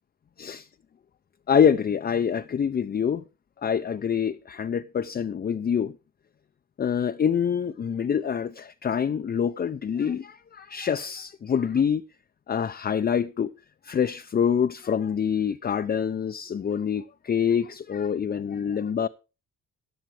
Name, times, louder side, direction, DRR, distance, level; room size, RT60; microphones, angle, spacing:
voice 1, 1.5-3.2 3.6-6.0 6.8-12.0 12.5-13.5 13.8-19.1, left 7 dB, 30° left, 0.6 m, -26 dB
15.5 x 10.5 x 3.3 m
cardioid pair, 90°, 30 cm